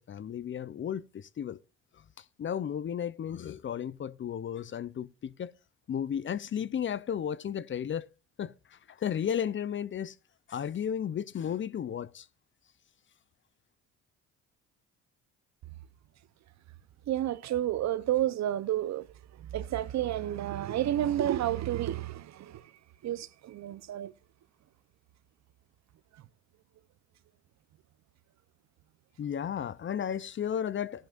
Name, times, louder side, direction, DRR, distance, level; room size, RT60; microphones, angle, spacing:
voice 1, 0.0-1.6 2.4-5.5 5.9-8.1 8.4-8.5 8.9-10.1 10.5-12.3 29.2-31.1, left 8 dB, 40° left, 0.6 m, -34 dB
voice 2, 17.1-19.1 19.4-22.7 23.0-24.1, right 12 dB, 60° right, 0.8 m, -30 dB
17.0 x 10.5 x 2.5 m
cardioid pair, 85°, 31 cm